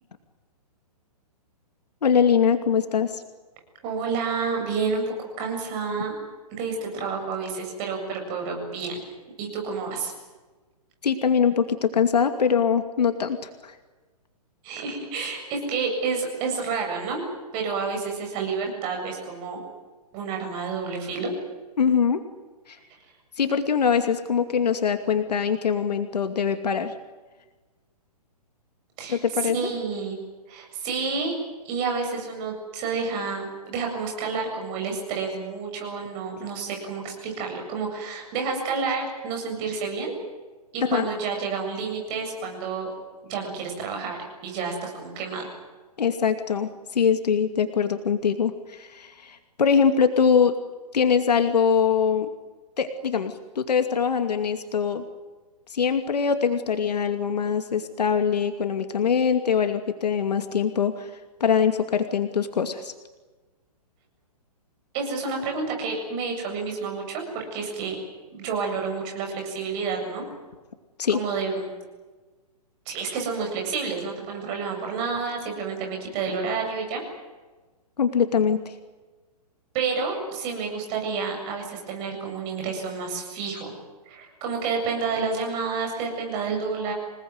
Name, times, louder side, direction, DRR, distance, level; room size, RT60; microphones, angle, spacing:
voice 1, 2.0-3.2 11.0-13.8 21.8-22.2 22.7-22.8 23.4-26.9 29.1-29.7 40.8-41.1 46.0-50.6 50.9-52.3 52.8-55.0 55.7-61.1 61.4-62.9 71.0-71.2 78.0-78.7, left 6 dB, 85° left, 7 dB, 2.5 m, -23 dB
voice 2, 3.8-6.1 6.5-9.0 9.4-10.1 14.6-17.2 17.5-19.6 20.1-21.3 29.0-30.2 30.5-31.3 31.6-40.1 40.7-42.9 43.2-45.5 64.9-68.0 68.3-70.2 71.1-71.7 72.9-77.0 79.7-83.7 84.1-86.9, right 5 dB, 25° right, 1 dB, 7.7 m, -29 dB
27.5 x 19.5 x 9.6 m, 1.3 s
hypercardioid pair, 165°, 20 cm